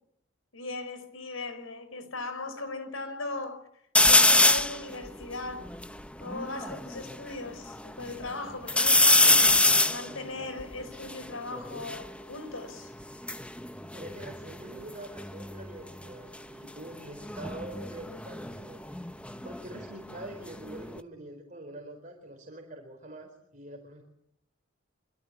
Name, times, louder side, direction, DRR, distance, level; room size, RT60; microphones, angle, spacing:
voice 1, 0.5-3.7 4.0-5.7 6.2-9.5 9.9-12.9, left 2 dB, 90° left, 5.1 m, -38 dB
sound 1, 3.9-4.8 5.3-5.4 5.6-7.2 7.7-8.3 8.7-12.1 13.0-14.9 15.2-15.7 17.2-19.9 20.2-21.0, left 2 dB, 5° left, 1.0 m, -24 dB
voice 2, 13.9-18.8 19.4-24.0, right 1 dB, 40° right, 4.5 m, -44 dB
26.0 x 25.5 x 8.7 m
head